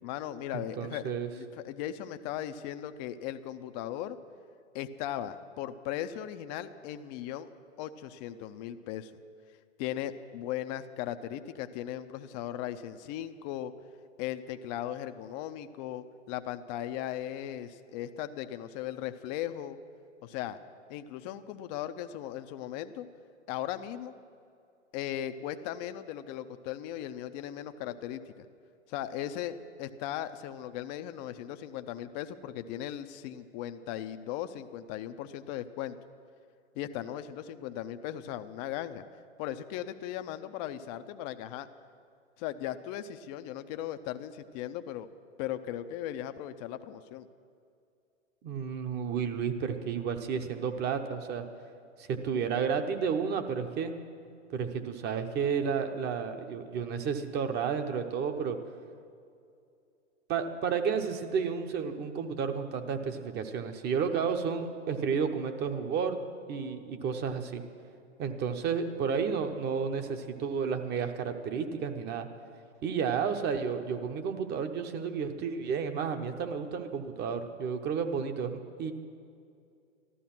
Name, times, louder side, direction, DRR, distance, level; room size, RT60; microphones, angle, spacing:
voice 1, 0.0-4.2 4.7-7.5 7.8-9.1 9.8-13.7 14.2-19.8 20.2-20.6 20.9-23.1 23.5-24.2 24.9-28.3 28.9-36.0 36.7-41.7 42.4-45.1 45.4-47.3, left 11 dB, 35° left, 10 dB, 0.6 m, -38 dB
voice 2, 0.5-1.3 48.4-51.4 52.0-53.9 54.5-58.6 60.3-66.2 66.5-67.6 68.2-72.3 72.8-78.9, right 6 dB, 30° right, 7 dB, 1.0 m, -32 dB
14.0 x 12.5 x 6.0 m, 2.4 s
hypercardioid pair, 110°, 36 cm